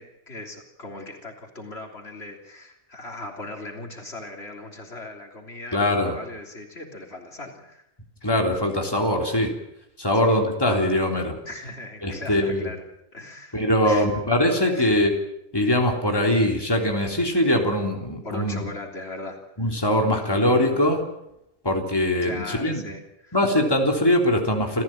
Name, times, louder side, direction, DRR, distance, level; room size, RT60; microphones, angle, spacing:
voice 1, 0.0-7.9 10.2-10.4 11.4-12.8 13.1-14.1 14.7-15.0 18.2-19.4 19.7-19.8 20.2-20.8 22.2-23.4, left 2 dB, 65° left, 2 dB, 3.7 m, -38 dB
voice 2, 5.7-6.2 8.2-9.5 10.0-11.4 12.0-12.7 13.5-15.1 15.5-18.7 19.6-21.0 21.6-22.8 23.3-24.8, left 1 dB, 20° left, 1 dB, 3.6 m, -22 dB
28.5 x 15.0 x 9.0 m, 0.83 s
omnidirectional pair, 1.2 m